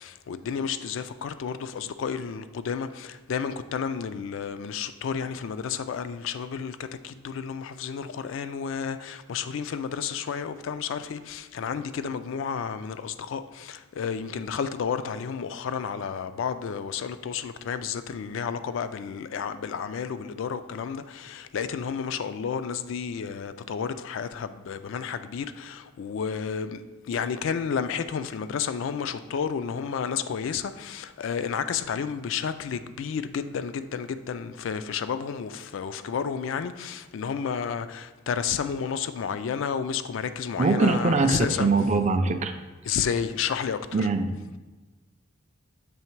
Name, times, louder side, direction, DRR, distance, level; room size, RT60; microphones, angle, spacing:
voice 1, 0.0-26.8 27.1-41.7 42.8-44.1, left 7 dB, 65° left, 0.3 m, -31 dB
voice 2, 40.6-42.5 42.9-43.0 43.9-44.3, right 3 dB, 35° right, 0.3 m, -23 dB
7.0 x 3.2 x 4.5 m
head